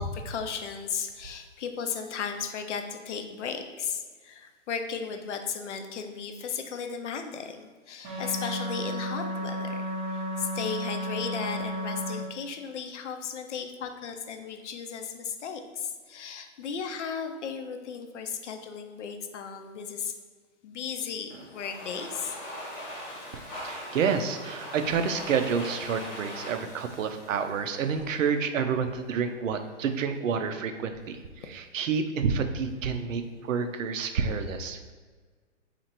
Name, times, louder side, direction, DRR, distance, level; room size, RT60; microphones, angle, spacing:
voice 1, 0.0-20.1 20.6-22.4, left 6 dB, 70° left, 6 dB, 0.6 m, -35 dB
sound 1, 8.0-12.1, equal, 15° right, 0.5 m, -33 dB
Domestic sounds home sounds, 21.3-28.2, equal, 25° left, 0.9 m, -41 dB
voice 2, 23.3-31.2 31.5-34.9, right 6 dB, 85° right, 8 dB, 0.5 m, -29 dB
2.9 x 2.5 x 4.3 m, 1.5 s
hypercardioid pair, 145°, 38 cm